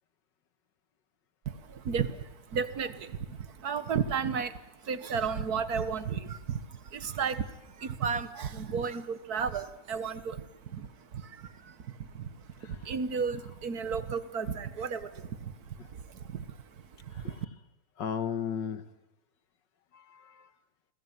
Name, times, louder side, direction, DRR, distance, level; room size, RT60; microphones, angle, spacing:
voice 1, 1.5-12.3 12.6-16.6 17.0-17.3, right 6 dB, 60° right, 13 dB, 1.7 m, -34 dB
voice 2, 12.6-12.9 15.8-15.9 17.1-17.5 18.0-18.8 19.9-20.5, left 8 dB, 85° left, 12 dB, 2.0 m, -36 dB
29.0 x 20.5 x 9.5 m, 0.99 s
omnidirectional pair, 1.9 m